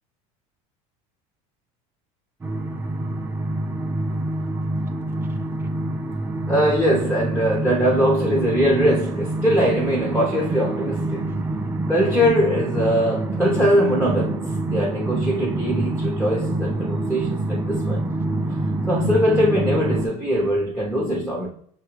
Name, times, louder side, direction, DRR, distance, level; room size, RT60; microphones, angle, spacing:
sound 1, 2.4-20.1, right 2 dB, 15° right, 0.3 m, -26 dB
voice 1, 6.5-11.3 11.9-18.1 18.9-21.5, equal, 5° left, 0.7 m, -21 dB
5.7 x 2.2 x 3.2 m
supercardioid pair, 120°, 16 cm